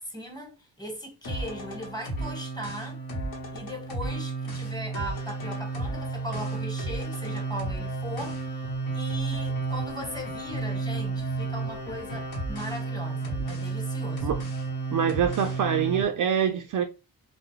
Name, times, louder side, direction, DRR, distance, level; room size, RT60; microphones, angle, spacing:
voice 1, 0.0-3.0 3.5-14.4, equal, 10° left, 1.2 m, -39 dB
sound 1, 1.2-16.0, right 3 dB, 65° left, 1.1 m, -32 dB
voice 2, 14.9-16.8, right 8 dB, 50° right, 0.4 m, -25 dB
2.3 x 2.1 x 3.1 m
cardioid pair, 70°, 40 cm